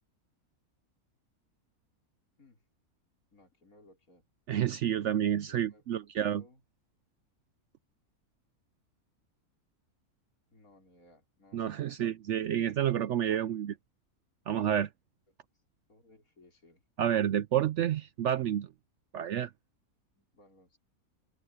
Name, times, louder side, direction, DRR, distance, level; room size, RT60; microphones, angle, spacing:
voice 1, 3.3-4.3 5.5-6.6 10.5-11.9 15.3-15.4 15.9-16.8 20.2-20.8, left 2 dB, 70° left, 5.2 m, -61 dB
voice 2, 4.5-6.4 11.5-13.7 14.5-14.9 17.0-18.7 19.1-19.5, right 10 dB, 65° right, 0.8 m, -29 dB
omnidirectional pair, 1.6 m